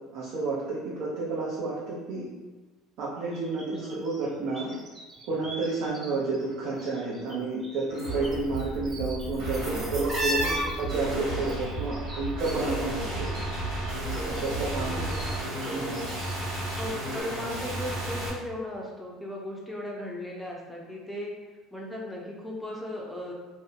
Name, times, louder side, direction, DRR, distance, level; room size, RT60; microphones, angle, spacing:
voice 1, 0.1-2.2 3.0-4.7 5.2-13.4 14.2-15.1 15.7-16.0, right 3 dB, 65° right, -6 dB, 0.6 m, -31 dB
sound 1, 3.3-6.1 6.3-7.4 7.6-13.6 13.8-16.9 17.2-17.3, right 1 dB, 30° right, 1.1 m, -37 dB
sound 2, 4.6-4.7 5.2-5.9 6.4-6.8 7.9-8.5 9.4-18.3, equal, 80° right, 1.1 m, -35 dB
sound 3, 8.0-15.4, right 3 dB, 80° left, 0.9 m, -36 dB
voice 2, 10.4-10.8 14.7-15.6 16.8-21.3 21.7-23.3, left 1 dB, 5° left, -2 dB, 0.5 m, -37 dB
2.6 x 2.0 x 2.5 m, 1.2 s
supercardioid pair, 85°, 0 cm